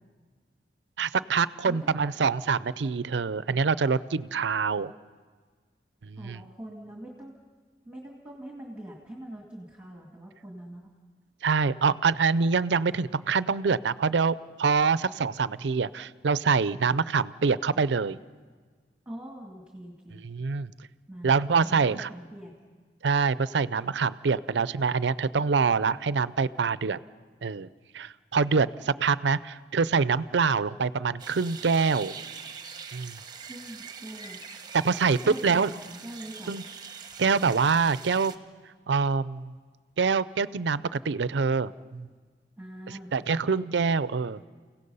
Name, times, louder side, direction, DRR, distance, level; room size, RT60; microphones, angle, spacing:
voice 1, 1.0-4.9 6.0-6.4 11.4-18.2 20.1-20.7 21.2-22.1 23.0-27.0 27.4-27.7 27.9-32.1 32.9-33.2 34.7-35.7 36.5-36.6 37.2-38.3 38.9-39.5 40.0-42.1 42.9-44.4, right 5 dB, 90° right, 17 dB, 0.5 m, -25 dB
voice 2, 6.2-7.3 7.8-10.9 19.1-20.2 21.1-21.3 21.6-22.5 33.4-34.4 35.2-36.5 42.6-43.5, right 1 dB, 5° right, -1 dB, 2.1 m, -43 dB
sound 1, 31.2-38.4, right 6 dB, 25° right, 1.1 m, -43 dB
30.0 x 17.0 x 5.5 m, 1.5 s
head